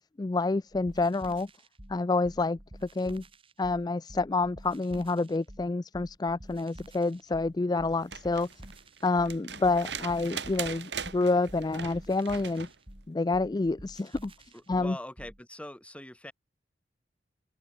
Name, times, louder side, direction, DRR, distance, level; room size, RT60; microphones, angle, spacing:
voice 1, 0.0-1.5 1.9-2.6 2.9-3.2 3.6-8.5 9.0-12.7 13.1-14.3 14.7-15.0, left 3 dB, 25° left, 0.4 m, -28 dB
sound 1, 0.7-15.4, right 1 dB, 30° right, 4.6 m, -50 dB
sound 2, 7.9-12.8 14.4-14.5, right 7 dB, 80° right, 3.9 m, -40 dB
voice 2, 14.5-16.3, left 1 dB, 5° left, 4.1 m, -43 dB
open air
head